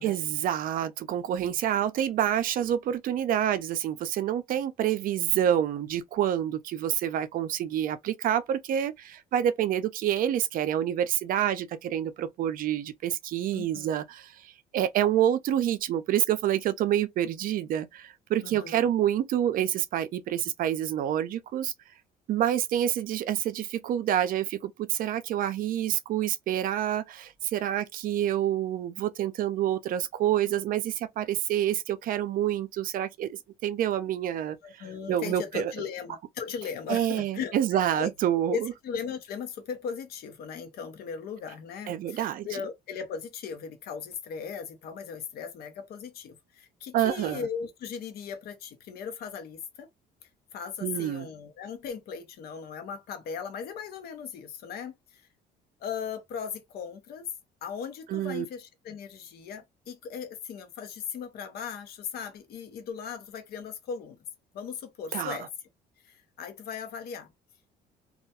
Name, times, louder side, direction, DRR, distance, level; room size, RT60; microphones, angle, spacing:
voice 1, 0.0-21.7 22.3-34.6 35.1-35.7 36.9-38.7 41.9-42.5 46.9-47.4 50.8-51.3 58.1-58.5 65.1-65.4, right 11 dB, 55° right, 0.4 m, -27 dB
voice 2, 13.5-13.9 18.4-18.8 34.6-38.1 38.5-49.9 50.2-55.3 55.8-57.3 57.6-64.2 64.5-65.5 66.0-67.3, left 6 dB, 65° left, 0.8 m, -38 dB
2.3 x 2.2 x 2.7 m
cardioid pair, 110°, 17 cm